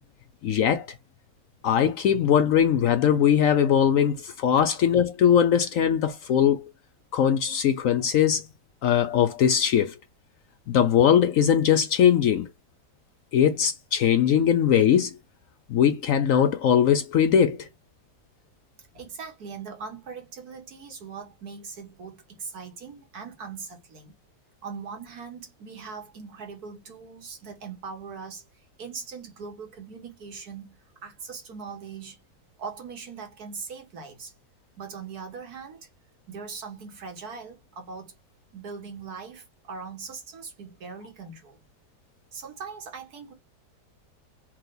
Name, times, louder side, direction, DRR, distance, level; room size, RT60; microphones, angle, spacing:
voice 1, 0.4-0.9 1.6-6.7 7.1-8.5 8.8-10.0 10.7-12.5 13.3-15.1 15.7-17.7, left 8 dB, 70° left, 0.8 m, -21 dB
voice 2, 18.9-24.1 24.6-32.2 32.6-34.3 34.8-35.9 36.3-38.1 38.5-41.6 42.3-43.3, right 5 dB, 60° right, 1.8 m, -40 dB
4.4 x 2.8 x 3.9 m
omnidirectional pair, 1.9 m